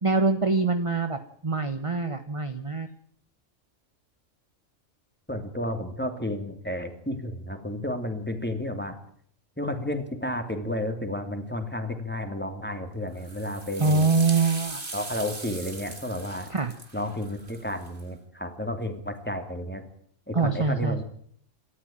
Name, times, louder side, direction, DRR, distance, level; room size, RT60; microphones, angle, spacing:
voice 1, 0.0-2.9 13.8-14.8 16.5-16.7 20.3-21.0, right 3 dB, 25° right, 8 dB, 1.2 m, -24 dB
voice 2, 5.3-9.0 9.6-14.1 14.9-16.5 16.9-19.8 20.3-21.0, left 1 dB, 10° left, 6 dB, 3.1 m, -32 dB
sound 1, 13.2-18.0, right 2 dB, 40° right, 2.7 m, -40 dB
28.0 x 13.5 x 9.0 m, 0.63 s
omnidirectional pair, 1.3 m